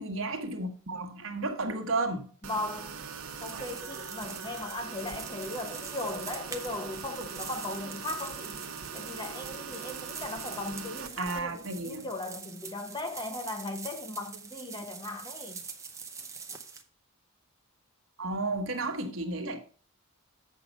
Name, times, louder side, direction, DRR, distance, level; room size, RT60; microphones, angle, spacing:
voice 1, 0.0-2.3 11.2-12.1 18.2-19.6, right 2 dB, 65° right, 1.3 m, -32 dB
voice 2, 2.4-2.9 3.4-8.6 8.9-15.6, left 2 dB, 20° left, 0.8 m, -38 dB
sound 1, 2.4-11.5, right 6 dB, 85° right, 1.0 m, -42 dB
sound 2, 3.1-16.8, right 5 dB, 15° right, 0.7 m, -44 dB
7.6 x 5.6 x 5.2 m
head